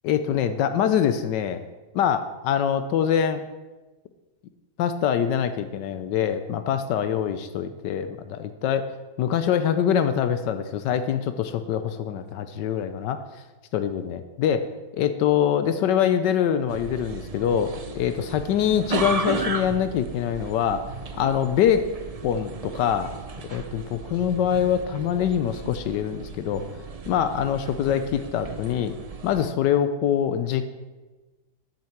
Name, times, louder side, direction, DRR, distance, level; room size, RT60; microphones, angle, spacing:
voice 1, 0.0-1.6 1.9-3.4 4.8-8.9 9.2-13.2 13.7-14.7 14.9-20.8 21.2-21.9 22.2-23.1 23.5-26.6 27.1-28.9 29.2-30.7, left 9 dB, 85° left, 9 dB, 1.3 m, -24 dB
sound 1, 16.7-29.5, right 4 dB, 65° right, 0.3 m, -35 dB
13.0 x 10.5 x 4.5 m, 1.2 s
omnidirectional pair, 1.8 m